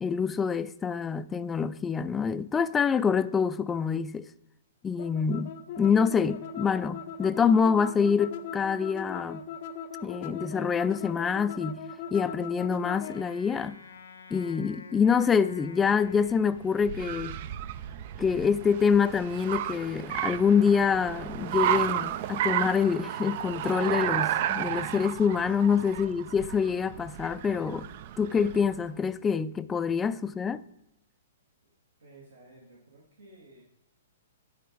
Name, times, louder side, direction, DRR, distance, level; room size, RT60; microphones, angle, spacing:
voice 1, 0.0-4.3 4.8-9.5 10.0-11.8 12.1-13.8 14.3-17.4 18.2-27.9 28.2-30.6, left 6 dB, 15° left, 0.3 m, -26 dB
sound 1, 5.0-13.2, left 6 dB, 50° left, 0.7 m, -39 dB
Wind instrument woodwind instrument, 12.9-17.3, left 4 dB, 75° left, 0.9 m, -49 dB
Car, 15.8-28.8, right 11 dB, 50° right, 0.4 m, -33 dB
voice 2, 32.0-33.6, right 2 dB, 80° right, 2.3 m, -54 dB
9.9 x 4.2 x 4.6 m
figure-of-eight pair, 120°, 0 cm